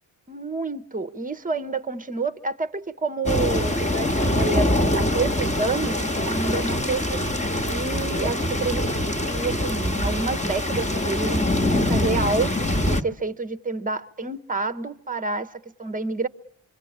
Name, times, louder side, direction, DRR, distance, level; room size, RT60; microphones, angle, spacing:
voice 1, 0.3-8.8 9.3-12.5 12.9-16.3, right 3 dB, 15° right, 1.0 m, -29 dB
sound 1, 3.3-13.0, left 1 dB, 15° left, 1.4 m, -24 dB
25.5 x 25.5 x 8.6 m
wide cardioid pair, 110°, 49 cm